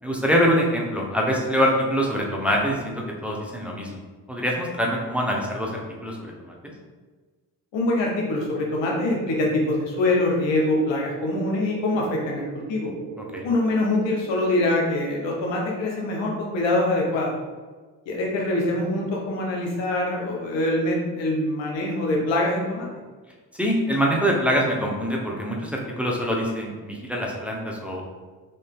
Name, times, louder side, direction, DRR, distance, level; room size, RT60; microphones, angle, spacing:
voice 1, 0.0-4.0 4.3-6.7 13.3-13.5 23.6-28.1, equal, 5° right, -2 dB, 0.8 m, -24 dB
voice 2, 7.7-12.9 13.4-17.3 18.1-22.9, left 2 dB, 75° left, -1 dB, 1.0 m, -24 dB
sound 1, 8.2-15.5, right 5 dB, 60° right, 0.5 m, -39 dB
3.2 x 2.7 x 3.6 m, 1.4 s
supercardioid pair, 50°, 44 cm